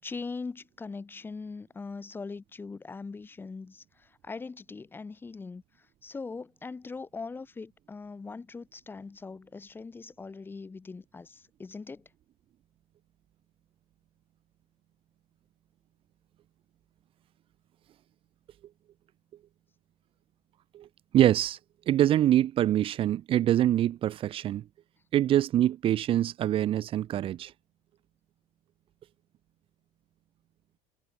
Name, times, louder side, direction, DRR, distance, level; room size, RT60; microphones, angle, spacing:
voice 1, 0.0-12.1, left 4 dB, 15° left, 5.8 m, -41 dB
voice 2, 21.1-21.6 21.9-24.6 25.1-27.5, right 12 dB, 40° right, 2.4 m, -24 dB
cardioid pair, 145°, 14 cm